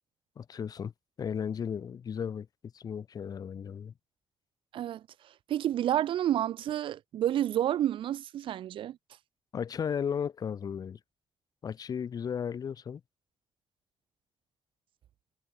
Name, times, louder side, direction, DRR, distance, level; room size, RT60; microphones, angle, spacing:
voice 1, 0.4-0.9 1.2-2.5 2.7-3.9 9.5-11.0 11.6-13.0, left 7 dB, 45° left, 1.4 m, -35 dB
voice 2, 4.7-5.0 5.5-9.0, right 11 dB, 75° right, 0.5 m, -29 dB
wide cardioid pair, 170°, 9 cm